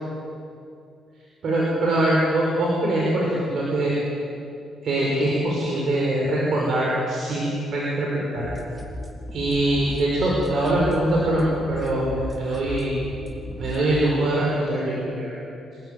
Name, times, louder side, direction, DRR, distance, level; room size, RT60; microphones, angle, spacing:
voice 1, 1.4-3.9 4.8-8.5 9.3-13.0 13.6-15.3, right 1 dB, 60° right, -4 dB, 5.7 m, -23 dB
sound 1, 8.4-13.8, equal, 15° right, 3.6 m, -36 dB
26.0 x 13.5 x 9.4 m, 2.5 s
cardioid pair, 90°, 0 cm